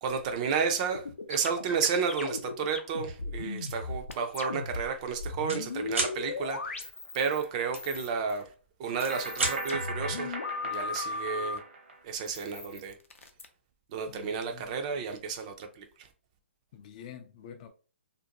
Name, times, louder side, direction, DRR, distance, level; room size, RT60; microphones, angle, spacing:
voice 1, 0.0-8.5 8.8-10.3 10.6-11.6 12.0-13.0 13.9-16.1, right 6 dB, 35° right, 0.4 m, -32 dB
sound 1, 0.9-7.5 7.8-8.4 8.9-11.6 12.3-13.5, left 3 dB, 90° left, 0.5 m, -37 dB
sound 2, 3.6-3.8 4.3-4.5 4.7-5.6 5.9-6.2 7.7-8.5 8.9-9.6, right 3 dB, 80° right, 1.2 m, -33 dB
sound 3, 7.0-7.1 9.1-12.0, right 2 dB, 60° right, 0.8 m, -38 dB
voice 2, 14.1-14.7 16.7-17.7, left 8 dB, 35° left, 0.3 m, -47 dB
2.5 x 2.1 x 2.7 m
hypercardioid pair, 140°, 7 cm